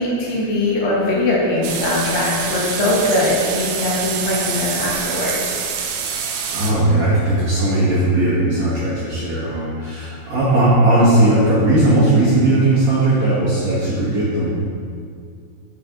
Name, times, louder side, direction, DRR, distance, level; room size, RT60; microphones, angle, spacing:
voice 1, 0.0-5.4, left 2 dB, 65° left, -4 dB, 3.0 m, -20 dB
sound 1, 1.6-6.7, right 6 dB, 80° right, 3.3 m, -26 dB
voice 2, 6.5-14.5, right 1 dB, 55° right, -11 dB, 2.7 m, -17 dB
9.5 x 5.5 x 5.3 m, 2.2 s
omnidirectional pair, 5.8 m